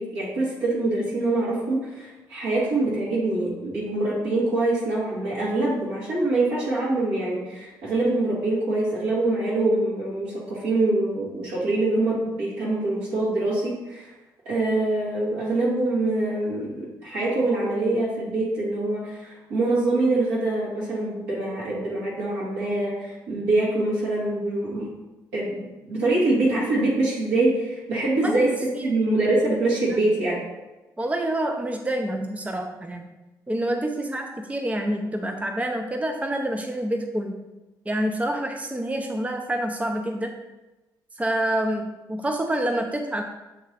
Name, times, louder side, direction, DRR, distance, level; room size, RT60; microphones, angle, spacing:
voice 1, 0.0-14.1 14.5-24.9 25.3-28.5 28.8-30.4, right 2 dB, 70° right, -7 dB, 2.1 m, -24 dB
voice 2, 31.0-33.1 33.5-37.4 37.9-40.3 41.2-43.2, right 1 dB, 15° right, 4 dB, 0.6 m, -27 dB
7.6 x 3.1 x 4.0 m, 1.1 s
figure-of-eight pair, 40°, 11 cm